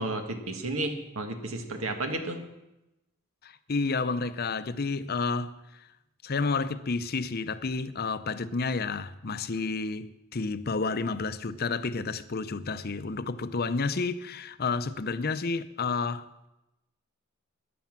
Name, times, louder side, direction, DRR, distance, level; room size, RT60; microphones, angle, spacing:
voice 1, 0.0-2.4, right 2 dB, 80° right, 1.8 m, -32 dB
voice 2, 3.4-5.8 6.2-16.5, left 4 dB, 45° left, 0.6 m, -30 dB
13.0 x 10.5 x 7.5 m
head